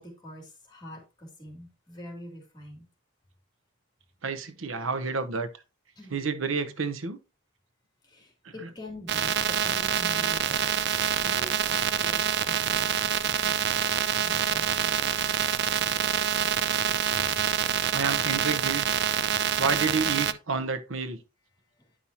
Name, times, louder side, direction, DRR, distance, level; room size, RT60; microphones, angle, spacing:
voice 1, 0.0-2.8 6.0-6.2 8.0-10.8 11.2-16.0 17.1-17.4 21.8-21.9, left 1 dB, 20° left, 2.8 m, -46 dB
voice 2, 4.2-5.5 6.1-7.2 8.4-8.7 17.9-19.0 19.6-21.2, right 4 dB, 80° right, 0.9 m, -30 dB
sound 1, 9.1-20.3, right 8 dB, 55° right, 0.5 m, -26 dB
9.9 x 5.6 x 2.9 m
head